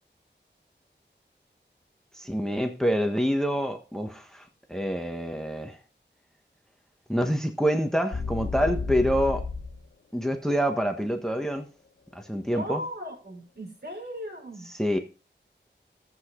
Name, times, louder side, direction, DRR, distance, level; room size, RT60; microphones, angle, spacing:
voice 1, 2.1-5.8 7.1-9.4 10.1-11.7 12.1-12.8 14.6-15.0, equal, 5° left, 1.4 m, -27 dB
sound 1, 8.1-9.8, left 4 dB, 75° left, 1.4 m, -31 dB
voice 2, 12.5-14.7, equal, 60° right, 5.5 m, -37 dB
13.0 x 8.3 x 3.9 m
wide cardioid pair, 60°, 19 cm